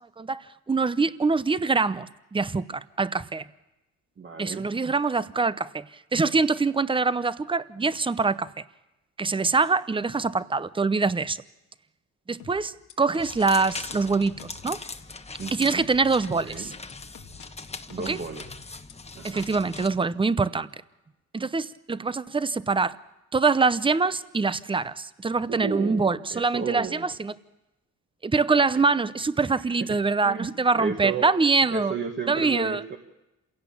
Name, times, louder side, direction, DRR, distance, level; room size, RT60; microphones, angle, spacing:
voice 1, 0.2-3.5 4.4-5.9 6.1-8.5 9.2-11.4 12.3-14.8 15.5-16.7 18.1-18.2 19.2-20.7 21.3-23.0 23.3-27.3 28.2-31.9 32.3-32.8, right 4 dB, 15° right, 16 dB, 0.7 m, -24 dB
voice 2, 4.2-4.7 15.4-15.9 16.4-16.7 17.9-18.6 19.2-19.5 25.5-27.1 29.5-31.3 31.7-33.0, right 4 dB, 40° right, 3 dB, 1.6 m, -33 dB
sound 1, 12.4-13.5 13.9-14.7 15.4-15.5 16.4-17.5 17.9-18.9 19.4-19.5, left 8 dB, 85° left, 2.0 m, -48 dB
sound 2, 13.2-19.9, left 3 dB, 20° left, 1.2 m, -40 dB
27.5 x 17.0 x 7.2 m, 0.97 s
cardioid pair, 90°, 30 cm